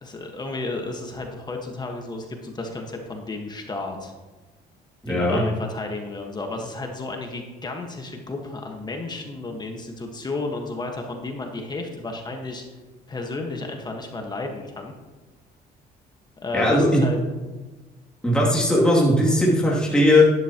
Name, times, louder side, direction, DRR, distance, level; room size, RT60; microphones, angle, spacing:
voice 1, 0.0-4.1 5.1-12.6 13.1-14.9 16.4-17.2, left 2 dB, 25° left, 2 dB, 1.5 m, -32 dB
voice 2, 5.0-5.4 16.5-17.0 18.2-20.2, left 1 dB, 5° left, -5 dB, 2.7 m, -18 dB
11.0 x 11.0 x 3.0 m, 1.2 s
cardioid pair, 110°, 17 cm